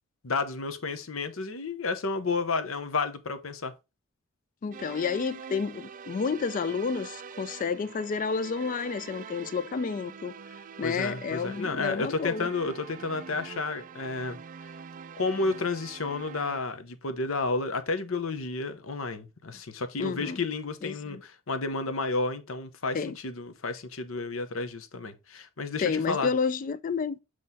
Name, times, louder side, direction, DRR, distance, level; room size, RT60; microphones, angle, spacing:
voice 1, 0.2-3.7 10.8-14.4 15.2-23.0 23.2-26.3, left 3 dB, 85° left, 0.9 m, -31 dB
voice 2, 4.6-10.3 10.8-12.5 20.0-20.4 20.8-21.2 22.9-23.2 25.8-27.2, left 5 dB, 40° left, 0.3 m, -30 dB
sound 1, 4.7-16.6, right 6 dB, 40° right, 0.3 m, -44 dB
7.5 x 3.2 x 4.0 m
head